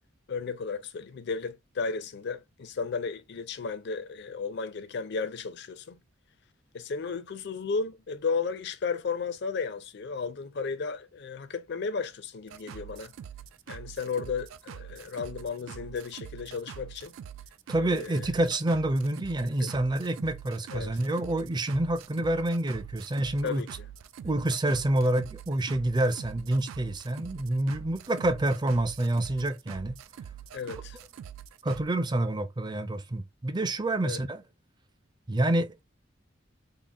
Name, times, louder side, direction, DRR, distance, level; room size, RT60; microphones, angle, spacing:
voice 1, 0.3-6.0 6.7-13.1 13.7-17.2 17.8-18.3 19.6-19.7 20.7-21.0 23.4-23.7 30.5-31.0 34.0-34.2, left 5 dB, 60° left, 0.5 m, -34 dB
sound 1, 12.5-31.9, right 9 dB, 80° right, 0.3 m, -45 dB
voice 2, 17.7-23.6 24.2-30.0 31.6-34.4 35.3-35.8, right 1 dB, 20° right, 0.4 m, -27 dB
3.8 x 2.1 x 3.4 m
head